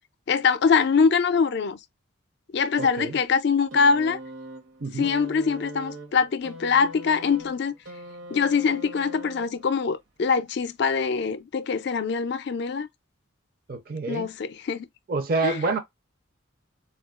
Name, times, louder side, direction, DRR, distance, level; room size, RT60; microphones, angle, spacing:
voice 1, 0.3-1.8 2.5-4.2 5.0-7.8 8.3-12.9 14.1-14.9 15.4-15.6, left 5 dB, 55° left, 0.4 m, -23 dB
voice 2, 2.8-3.2 4.8-5.1 13.7-14.3 15.1-15.8, right 4 dB, 45° right, 0.5 m, -27 dB
sound 1, 3.7-9.9 10.9-11.0, right 1 dB, 65° right, 0.9 m, -42 dB
4.2 x 2.3 x 2.3 m
head